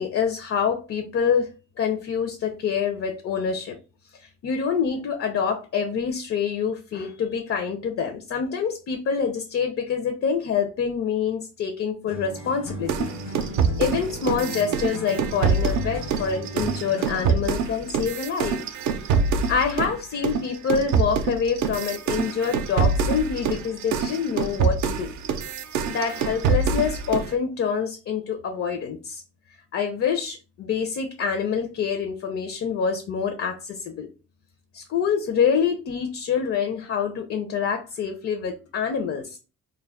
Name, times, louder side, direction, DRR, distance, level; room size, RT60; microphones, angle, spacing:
voice 1, 0.0-1.5 1.8-3.8 4.4-13.1 13.8-18.6 19.5-25.1 25.9-29.2 29.7-34.1 34.7-39.4, left 6 dB, 50° left, 5 dB, 0.5 m, -26 dB
sound 1, 12.1-17.4, right 1 dB, 90° left, 1.0 m, -36 dB
sound 2, 12.9-20.0 20.2-27.3, right 5 dB, 65° right, 0.5 m, -25 dB
2.3 x 2.0 x 3.4 m, 0.32 s
cardioid pair, 90°, 30 cm